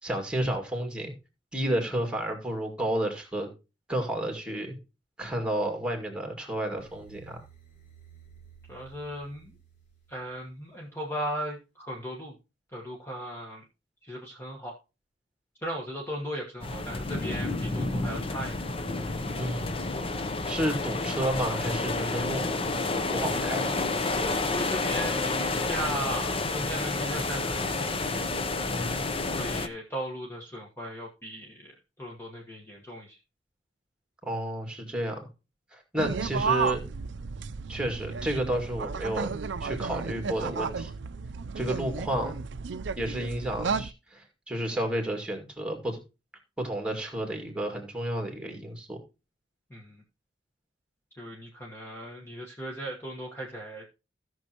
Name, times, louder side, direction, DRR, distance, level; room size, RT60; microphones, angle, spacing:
voice 1, 0.0-1.1 1.5-3.5 3.9-4.8 5.2-7.4 19.4-19.8 20.5-22.7 23.1-23.7 28.7-29.1 34.2-35.3 35.7-36.8 37.7-39.3 39.6-40.9 41.6-42.4 43.0-46.0 46.6-49.0, right 1 dB, 5° right, 4 dB, 2.1 m, -31 dB
sound 1, 6.8-10.9, right 8 dB, 50° left, 4.4 m, -55 dB
voice 2, 8.7-9.6 10.1-12.3 12.7-13.6 14.0-14.7 15.6-18.5 23.5-28.0 29.4-33.2 49.7-50.0 51.2-53.9, equal, 15° left, -2 dB, 1.3 m, -37 dB
sound 2, 16.6-29.7, left 3 dB, 30° left, 0.7 m, -30 dB
sound 3, 36.0-43.9, right 5 dB, 65° right, 0.5 m, -33 dB
16.0 x 6.2 x 2.9 m, 0.28 s
head